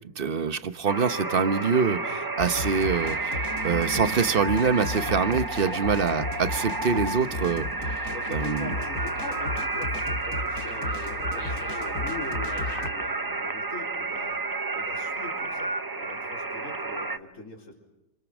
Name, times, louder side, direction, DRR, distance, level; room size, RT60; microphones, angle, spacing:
voice 1, 0.2-7.7 8.3-8.7, right 5 dB, 40° right, 12 dB, 1.0 m, -25 dB
sound 1, 0.9-17.2, right 3 dB, 20° right, 0.5 m, -31 dB
sound 2, 2.4-12.9, left 2 dB, 65° left, 2.4 m, -35 dB
voice 2, 8.1-14.4 14.7-15.7 16.0-17.7, left 3 dB, 45° left, 0 dB, 4.7 m, -42 dB
29.0 x 27.5 x 6.2 m, 0.96 s
omnidirectional pair, 1.8 m